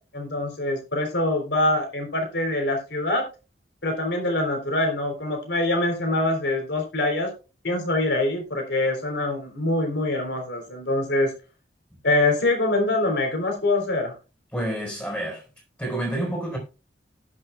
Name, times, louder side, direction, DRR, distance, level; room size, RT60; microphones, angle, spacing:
voice 1, 0.1-3.2 3.8-7.3 7.6-11.3 12.0-14.2, left 2 dB, 70° left, 3.6 m, -24 dB
voice 2, 14.5-15.4 15.8-16.6, right 1 dB, 10° left, 4.3 m, -28 dB
18.5 x 6.3 x 2.3 m
head